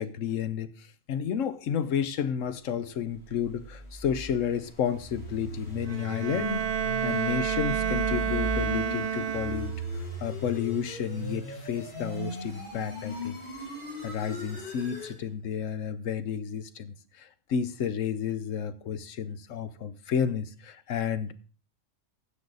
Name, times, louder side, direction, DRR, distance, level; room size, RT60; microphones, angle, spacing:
voice 1, 0.0-6.7 7.0-9.7 10.2-13.4 14.0-21.3, left 8 dB, 80° left, 13 dB, 1.2 m, -31 dB
sound 1, 3.0-15.2, equal, 20° left, 6.7 m, -38 dB
Bowed string instrument, 5.9-10.0, right 8 dB, 50° right, 0.5 m, -30 dB
15.5 x 5.8 x 4.0 m, 0.37 s
omnidirectional pair, 1.3 m